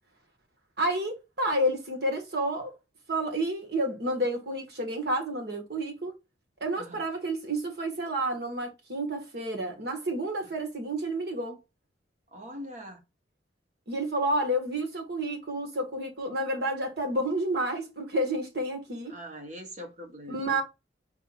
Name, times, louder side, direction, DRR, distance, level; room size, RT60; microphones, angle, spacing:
voice 1, 0.8-2.7 3.1-6.2 6.6-11.6 13.9-19.2 20.3-20.6, right 1 dB, 55° right, 1.7 m, -30 dB
voice 2, 12.3-13.0 19.1-20.6, equal, 40° right, 1.3 m, -42 dB
4.7 x 2.7 x 4.0 m
head